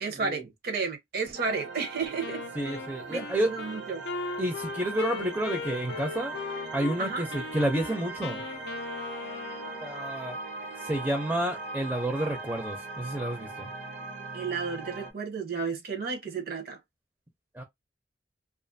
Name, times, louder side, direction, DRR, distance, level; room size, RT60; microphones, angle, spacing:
voice 1, 0.0-2.4 3.1-4.0 7.0-7.3 14.3-16.8, right 5 dB, 60° right, 0.8 m, -32 dB
sound 1, 1.3-15.1, right 3 dB, 90° right, 0.9 m, -40 dB
Wind instrument woodwind instrument, 2.2-7.0 7.3-9.9, left 5 dB, 65° left, 0.4 m, -38 dB
voice 2, 2.5-3.5 4.4-6.4 6.7-8.4 9.8-10.4 10.8-13.7 17.5-17.6, right 1 dB, 10° right, 0.5 m, -30 dB
2.5 x 2.4 x 2.6 m
head